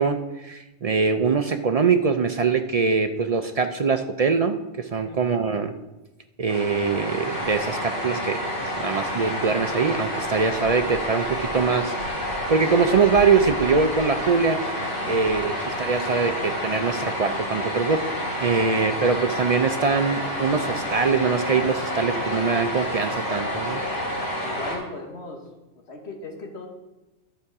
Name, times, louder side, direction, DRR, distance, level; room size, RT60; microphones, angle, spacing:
voice 1, 0.0-5.7 6.4-11.9 12.5-14.6 15.1-18.0 18.4-23.8, right 5 dB, 55° right, 7 dB, 0.4 m, -23 dB
sound 1, 6.5-24.8, equal, 80° left, 3.4 m, -29 dB
voice 2, 15.0-15.6 24.4-25.4 25.9-26.7, left 3 dB, 65° left, 1 dB, 1.7 m, -37 dB
11.5 x 7.0 x 4.8 m, 1.0 s
omnidirectional pair, 1.2 m